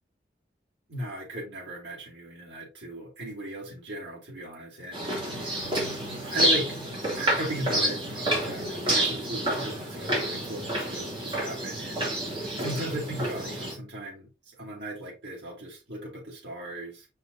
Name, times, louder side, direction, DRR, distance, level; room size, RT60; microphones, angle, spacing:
voice 1, 0.9-5.7 6.2-6.7 7.1-17.1, right 1 dB, 80° right, 3.1 m, -37 dB
sound 1, 4.9-13.7, right 1 dB, 30° right, 2.7 m, -29 dB
6.2 x 5.7 x 2.7 m
head